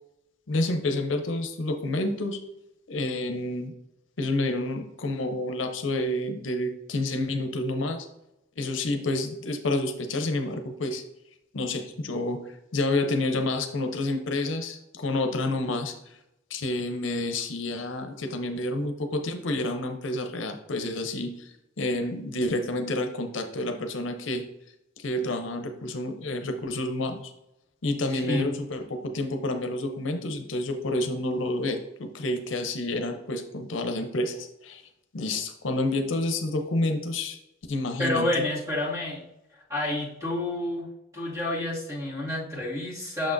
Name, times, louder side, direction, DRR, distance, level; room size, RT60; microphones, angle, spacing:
voice 1, 0.5-2.4 2.9-3.7 4.2-8.1 8.6-11.0 11.5-15.9 16.5-21.5 21.8-24.4 25.0-27.3 27.8-34.8 35.1-37.4 37.7-38.3, left 2 dB, 75° left, 6 dB, 0.7 m, -29 dB
voice 2, 28.1-28.5 38.0-39.2 39.7-40.9 41.1-43.3, left 1 dB, 15° right, -6 dB, 2.1 m, -29 dB
6.4 x 5.9 x 2.6 m, 0.87 s
head